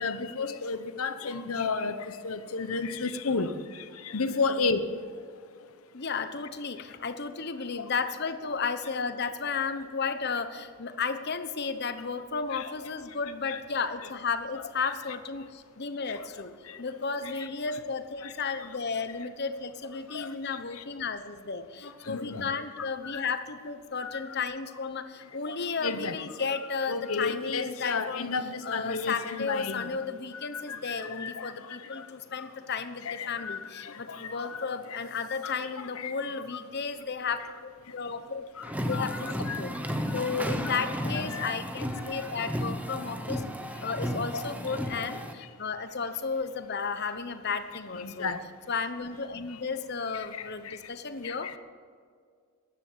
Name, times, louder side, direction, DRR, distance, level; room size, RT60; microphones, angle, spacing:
voice 1, 0.0-5.3 7.8-7.9 12.5-12.7 13.5-13.6 16.1-16.3 16.6-16.8 17.4-17.5 18.2-18.3 20.1-20.8 21.8-22.5 23.0-23.3 24.0-24.2 25.5-25.6 25.8-26.5 26.9-29.9 30.3-32.5 33.0-35.0 35.4-35.5 36.0-36.1 37.8-38.0 38.5-39.2 39.5-39.6 40.0-40.1 41.3-41.5 42.0-42.3 47.1-47.2 48.0-48.4 50.2-50.8 51.2-51.5, left 4 dB, 75° left, 11 dB, 1.0 m, -33 dB
voice 2, 5.9-16.5 16.8-28.3 28.6-38.4 38.9-39.7 40.1-43.4 43.8-48.3 48.7-51.6, left 5 dB, 50° left, 10 dB, 1.0 m, -33 dB
sound 1, 38.6-45.3, equal, 5° right, 0.9 m, -33 dB
14.0 x 10.5 x 7.4 m, 2.1 s
head